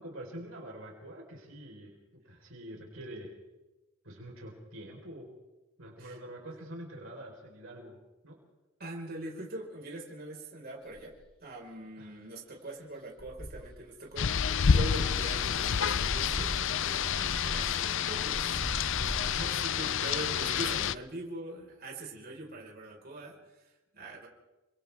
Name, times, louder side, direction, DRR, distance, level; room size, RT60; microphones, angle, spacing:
voice 1, 0.0-3.3 4.0-5.3 5.8-8.0 8.2-8.4 12.0-12.2 18.0-18.2 19.3-19.4, right 1 dB, 70° right, -1 dB, 4.4 m, -45 dB
voice 2, 8.8-11.1 11.4-14.3 14.7-24.3, right 1 dB, 50° right, -1 dB, 5.0 m, -42 dB
sound 1, 10.9-11.2 13.2-13.8 14.1-14.3 14.8-19.5, equal, 25° left, 4.8 m, -40 dB
Rain, 14.2-20.9, left 7 dB, 65° left, 0.6 m, -29 dB
29.0 x 25.5 x 3.6 m, 1.1 s
head